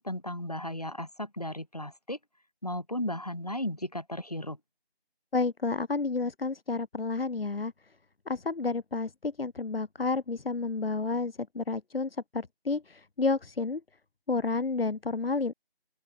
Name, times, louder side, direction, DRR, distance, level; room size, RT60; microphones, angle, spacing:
voice 1, 0.0-2.2 2.6-4.6, left 1 dB, 40° left, 1.9 m, -35 dB
voice 2, 5.3-7.7 8.3-13.8 14.3-15.5, left 3 dB, 70° left, 0.7 m, -30 dB
open air
figure-of-eight pair, 175°, 31 cm